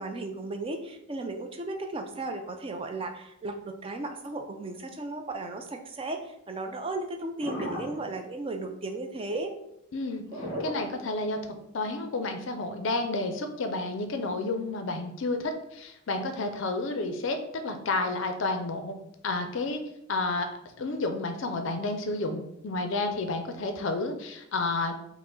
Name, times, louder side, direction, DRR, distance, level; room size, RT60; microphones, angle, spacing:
voice 1, 0.0-9.6, right 2 dB, 25° right, 5 dB, 0.4 m, -35 dB
Underwater Movement, 7.4-8.2 10.3-11.4 12.0-12.1, left 1 dB, 20° left, 1.4 m, -35 dB
voice 2, 9.9-10.2 10.6-11.4 11.7-19.0 19.2-19.8 20.1-20.5 20.8-25.0, left 2 dB, 60° left, 6 dB, 0.4 m, -30 dB
4.8 x 2.0 x 3.7 m, 0.81 s
head